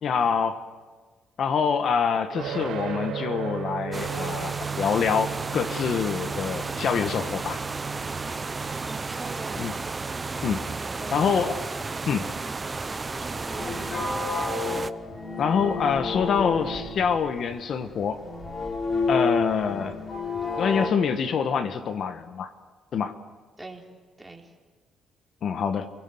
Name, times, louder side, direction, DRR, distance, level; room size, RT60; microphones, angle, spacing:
voice 1, 0.0-0.6 1.4-7.6 9.6-9.7 10.4-10.6 11.1-11.6 12.1-12.3 15.4-18.2 19.1-20.0 20.6-22.5 22.9-23.2 25.4-25.9, left 6 dB, 60° left, 9 dB, 1.3 m, -26 dB
sound 1, 2.3-13.3, right 8 dB, 85° right, 4.1 m, -37 dB
sound 2, 3.9-14.9, right 3 dB, 30° right, 0.8 m, -33 dB
voice 2, 8.9-9.6 10.9-11.5 13.2-13.9 23.6-23.8 24.2-24.5, right 2 dB, 10° right, 0 dB, 3.7 m, -41 dB
sound 3, 11.8-20.9, left 3 dB, 45° left, 3.6 m, -30 dB
28.5 x 18.0 x 7.9 m, 1.4 s
cardioid pair, 90°, 0 cm